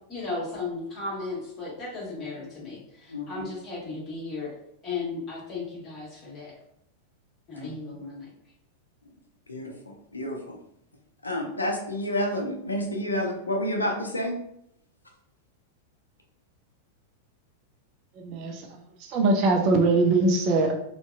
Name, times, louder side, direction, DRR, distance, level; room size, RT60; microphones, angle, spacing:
voice 1, 0.1-4.5 4.8-6.5 7.5-8.3, left 3 dB, 30° left, -5 dB, 1.2 m, -35 dB
voice 2, 2.2-2.5 3.1-3.5 7.6-7.8 9.5-10.6 11.2-14.4, left 1 dB, 80° left, 2 dB, 0.4 m, -30 dB
voice 3, 18.2-18.6 19.1-20.7, right 3 dB, 40° right, 3 dB, 0.4 m, -22 dB
2.6 x 2.1 x 2.3 m, 0.74 s
figure-of-eight pair, 90°, 0 cm